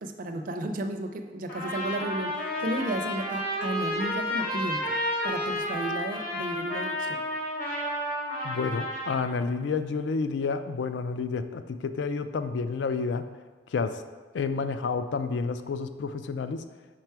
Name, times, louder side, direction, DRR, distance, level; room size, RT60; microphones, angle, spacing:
voice 1, 0.0-4.9 5.2-7.2, right 1 dB, 50° right, 5 dB, 0.4 m, -33 dB
Trumpet, 1.5-9.2, left 1 dB, 50° left, 1.9 m, -31 dB
voice 2, 8.4-13.3 13.7-14.0 14.3-16.6, left 4 dB, 70° left, 10 dB, 0.3 m, -30 dB
4.9 x 4.6 x 4.5 m, 1.3 s
head